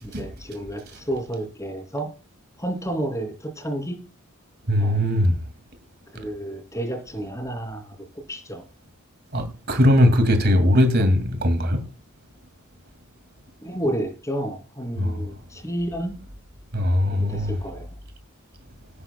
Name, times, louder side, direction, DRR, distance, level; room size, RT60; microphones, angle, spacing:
voice 1, 0.0-2.1 2.6-4.0 4.8-5.0 6.1-8.6 11.0-11.1 13.6-16.1 17.1-18.0, right 1 dB, 15° left, 3.0 m, -31 dB
voice 2, 4.7-5.3 9.3-11.8 15.0-15.2 16.7-17.6, left 1 dB, 50° right, 2.4 m, -20 dB
17.5 x 9.7 x 2.3 m
head